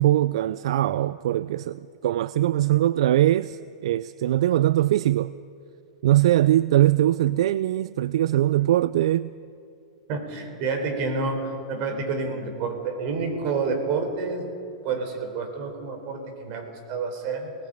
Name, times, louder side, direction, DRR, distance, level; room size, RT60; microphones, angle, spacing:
voice 1, 0.0-5.3 6.0-9.3, right 13 dB, 75° right, 0.4 m, -21 dB
voice 2, 10.1-14.5 14.8-17.5, right 4 dB, 50° right, 4.4 m, -29 dB
29.5 x 19.5 x 5.3 m
hypercardioid pair, 135°, 3 cm